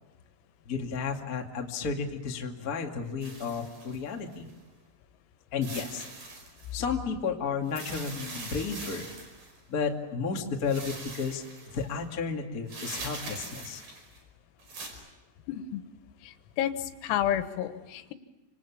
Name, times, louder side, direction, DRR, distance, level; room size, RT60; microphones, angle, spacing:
voice 1, 0.6-4.5 5.5-6.0 6.7-9.1 9.7-11.4 11.7-13.8, left 5 dB, 50° left, 2 dB, 1.0 m, -32 dB
sound 1, 3.2-4.5 5.6-6.7 7.6-9.6 10.6-11.9 12.7-14.2 14.6-14.9, right 3 dB, 40° right, 6.4 m, -42 dB
voice 2, 15.5-15.8 16.2-18.1, left 11 dB, 85° left, 10 dB, 4.0 m, -31 dB
28.5 x 26.5 x 7.4 m, 1.1 s
omnidirectional pair, 6.0 m